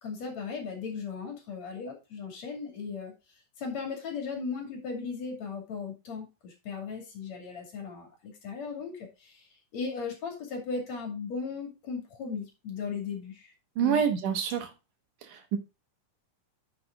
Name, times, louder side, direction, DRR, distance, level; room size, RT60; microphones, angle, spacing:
voice 1, 0.0-3.1 3.6-9.4 9.7-13.5 13.8-14.0, left 5 dB, 55° left, 2 dB, 3.5 m, -37 dB
voice 2, 13.8-14.7 15.2-15.6, right 8 dB, 75° right, 7 dB, 2.7 m, -27 dB
9.8 x 6.0 x 3.7 m, 0.27 s
omnidirectional pair, 3.7 m